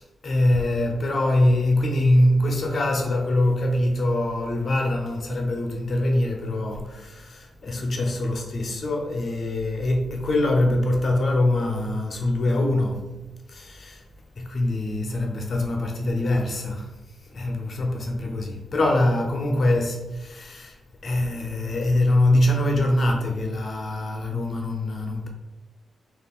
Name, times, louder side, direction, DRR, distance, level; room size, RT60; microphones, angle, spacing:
voice 1, 0.0-13.1 13.5-14.0 14.4-16.9 17.2-20.8 21.0-25.3, left 1 dB, 50° left, 0.5 m, -23 dB
3.5 x 2.4 x 2.3 m
cardioid pair, 105°, 0 cm